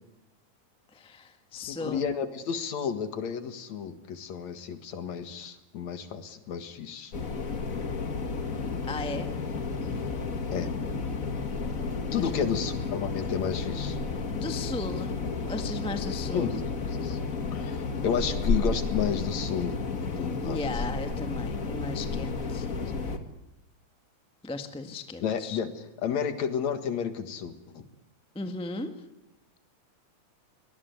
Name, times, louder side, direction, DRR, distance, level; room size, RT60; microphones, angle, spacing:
voice 1, 0.9-2.0 8.8-9.3 12.1-12.5 14.4-15.2 15.5-16.6 20.4-22.7 24.4-25.6 28.3-29.0, left 2 dB, 5° left, 7 dB, 0.9 m, -36 dB
voice 2, 1.6-7.1 10.5-10.7 12.1-14.0 16.3-16.6 17.0-17.2 17.5-19.7 20.2-20.6 25.2-25.7 26.0-27.8, left 7 dB, 65° left, 9 dB, 2.9 m, -31 dB
sound 1, 7.1-23.2, left 4 dB, 35° left, 1.6 m, -32 dB
23.5 x 19.0 x 9.4 m, 0.87 s
omnidirectional pair, 3.5 m